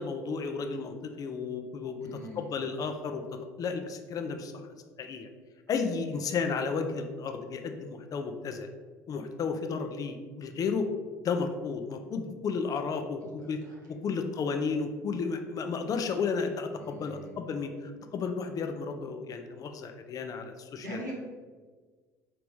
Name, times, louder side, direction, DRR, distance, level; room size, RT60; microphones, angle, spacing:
voice 1, 0.0-2.1 2.4-4.5 5.0-5.3 5.7-8.7 9.1-10.9 11.2-13.6 13.9-17.7 18.1-21.0, left 5 dB, 40° left, 6 dB, 0.5 m, -33 dB
voice 2, 2.0-2.5 13.4-13.8 16.8-17.3 20.8-21.1, equal, 85° right, -3 dB, 1.0 m, -42 dB
4.7 x 2.9 x 3.4 m, 1.5 s
figure-of-eight pair, 60°, 9 cm